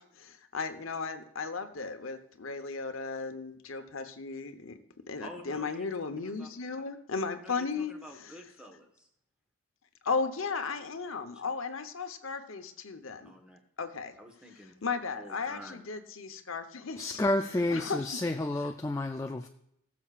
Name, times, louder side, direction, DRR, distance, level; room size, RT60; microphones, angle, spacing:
voice 1, 0.0-4.8 5.1-8.3 10.0-13.3 13.8-14.2 14.8-17.2 17.7-18.0, left 4 dB, 75° left, 1.0 m, -35 dB
voice 2, 5.2-6.5 6.7-6.8 7.4-9.1 11.3-11.4 13.2-13.6 14.2-14.7 15.2-15.8, equal, 5° right, 1.3 m, -49 dB
voice 3, 17.0-19.5, left 1 dB, 15° left, 0.3 m, -30 dB
18.0 x 7.1 x 2.5 m
head